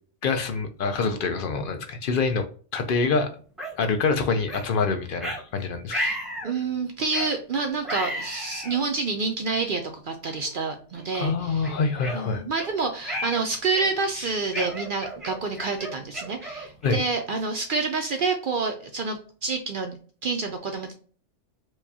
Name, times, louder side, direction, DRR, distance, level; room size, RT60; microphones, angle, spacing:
voice 1, 0.2-2.4 2.7-3.3 3.8-6.0 11.1-12.4 14.2-14.3 16.8-17.0, left 4 dB, 60° left, 6 dB, 0.6 m, -25 dB
sound 1, 3.6-3.7 4.5-4.7 5.2-5.4 5.9-6.5 7.1-7.3 7.8-8.8 9.5-9.6 10.3-10.5 10.9-11.1 11.6-12.7 13.0-13.4 13.7-14.1 14.5-17.1, equal, ahead, 0.8 m, -33 dB
voice 2, 6.4-11.8 12.1-20.9, right 4 dB, 60° right, 5 dB, 0.6 m, -28 dB
4.6 x 2.2 x 2.7 m, 0.41 s
omnidirectional pair, 1.3 m